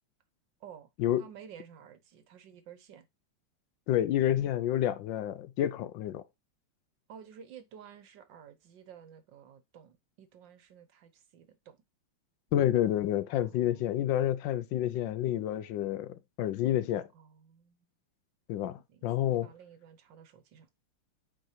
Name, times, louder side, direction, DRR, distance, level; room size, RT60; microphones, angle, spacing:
voice 1, 1.2-3.1 7.1-11.8 13.3-13.9 17.1-17.8 18.6-20.7, right 8 dB, 65° right, 1.5 m, -52 dB
voice 2, 3.9-6.2 12.5-17.1 18.5-19.5, left 12 dB, 75° left, 1.2 m, -29 dB
8.6 x 4.7 x 2.8 m
omnidirectional pair, 2.3 m